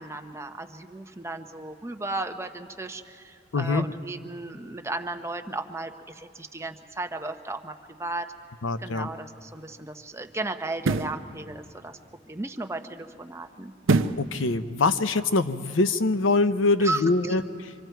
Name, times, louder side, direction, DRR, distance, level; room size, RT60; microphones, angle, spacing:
voice 1, 0.0-8.3 8.8-12.0 12.3-13.7 16.8-17.3, right 2 dB, 15° right, 6 dB, 0.7 m, -35 dB
voice 2, 3.5-3.9 8.6-9.1 14.2-17.4, left 3 dB, 80° left, 11 dB, 0.7 m, -23 dB
sound 1, 8.9-9.0 10.7-11.2 13.8-14.3 14.8-14.9, right 3 dB, 85° right, 0.6 m, -23 dB
25.5 x 25.0 x 4.6 m, 2.4 s
head